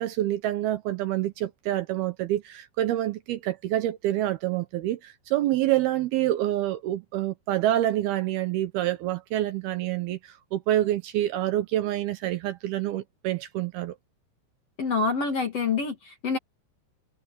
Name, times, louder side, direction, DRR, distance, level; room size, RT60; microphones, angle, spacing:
voice 1, 0.0-10.2 10.5-14.0, right 14 dB, 75° right, 2.6 m, -27 dB
voice 2, 14.8-16.4, left 4 dB, 45° left, 2.4 m, -26 dB
omnidirectional pair, 5.0 m